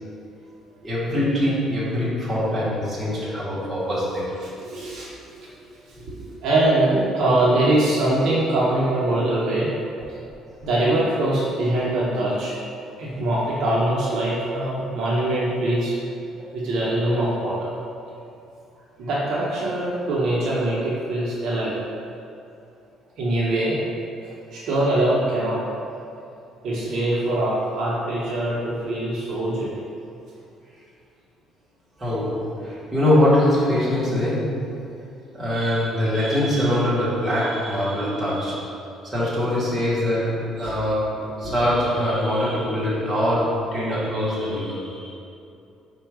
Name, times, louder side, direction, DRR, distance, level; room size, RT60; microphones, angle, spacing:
voice 1, 0.8-4.4 10.5-10.6 32.0-34.9 35.3-38.8 39.0-45.2, left 1 dB, 15° right, -9 dB, 1.0 m, -23 dB
voice 2, 4.6-5.1 5.4-9.7 10.6-12.6 13.0-15.9 16.5-17.7 19.0-21.8 23.2-23.8 24.5-25.6 26.6-29.8 40.6-40.7 41.4-41.6, right 1 dB, 55° right, -6 dB, 0.7 m, -23 dB
4.4 x 2.2 x 4.6 m, 2.6 s
cardioid pair, 175°, 0 cm